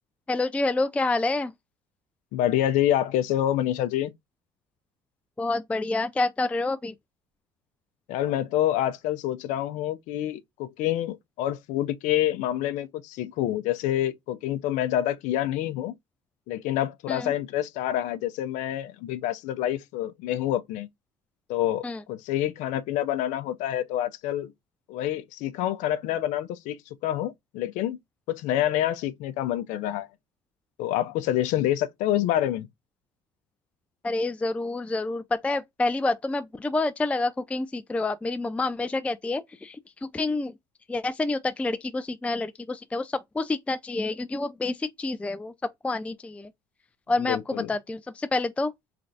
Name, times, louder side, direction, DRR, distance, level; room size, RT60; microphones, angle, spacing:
voice 1, 0.3-1.5 5.4-6.9 17.1-17.3 21.8-22.0 34.0-40.5 40.9-46.5 47.1-48.7, left 2 dB, 10° left, 0.3 m, -28 dB
voice 2, 2.3-4.1 8.1-15.9 16.5-20.9 21.5-24.5 24.9-28.0 28.3-30.1 30.8-32.7 47.2-47.7, left 12 dB, 70° left, 0.5 m, -27 dB
3.8 x 3.3 x 2.5 m
hypercardioid pair, 75°, 13 cm